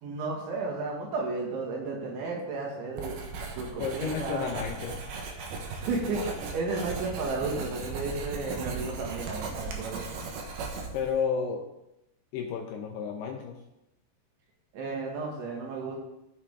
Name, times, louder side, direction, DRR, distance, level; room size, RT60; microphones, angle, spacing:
voice 1, 0.0-3.2 3.6-4.5 5.7-10.1 14.7-16.0, right 3 dB, 85° right, -1 dB, 4.4 m, -33 dB
Writing, 3.0-11.2, right 4 dB, 70° right, 2.7 m, -37 dB
voice 2, 3.8-5.0 10.9-11.7 12.3-13.6, left 6 dB, 75° left, 2 dB, 2.5 m, -32 dB
15.5 x 6.1 x 3.6 m, 0.87 s
omnidirectional pair, 5.3 m